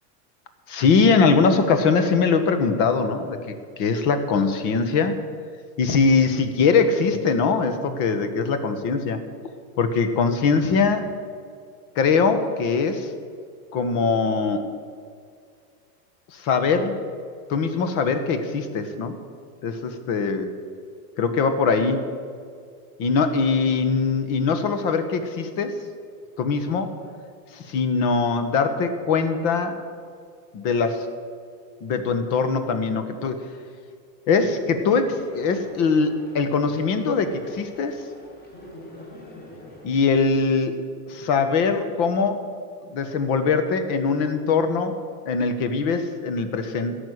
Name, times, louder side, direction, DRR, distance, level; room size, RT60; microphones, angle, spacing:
voice 1, 0.7-5.1 5.8-9.2 9.8-11.1 11.9-13.1 13.7-14.7 16.3-17.0 17.5-19.2 19.6-20.5 21.2-22.0 23.0-25.8 26.4-26.9 27.5-29.8 30.5-31.1 31.8-33.4 34.3-38.0 39.8-40.8 41.1-42.4 42.9-45.0 45.2-47.0, left 5 dB, 40° left, 9 dB, 1.5 m, -22 dB
sound 1, 34.7-40.0, left 1 dB, 20° left, 2.6 m, -44 dB
15.0 x 6.4 x 9.7 m, 2.2 s
supercardioid pair, 150°, 47 cm